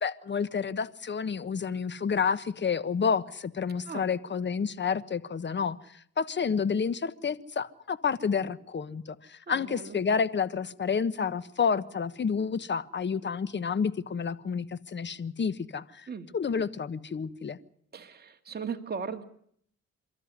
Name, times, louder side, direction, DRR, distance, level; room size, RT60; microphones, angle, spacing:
voice 1, 0.0-17.6, left 6 dB, 35° left, 16 dB, 1.3 m, -30 dB
voice 2, 9.5-10.0 16.1-16.3 17.9-19.2, right 5 dB, 35° right, 4 dB, 2.2 m, -37 dB
29.0 x 13.0 x 9.7 m, 0.66 s
cardioid pair, 90°, 30 cm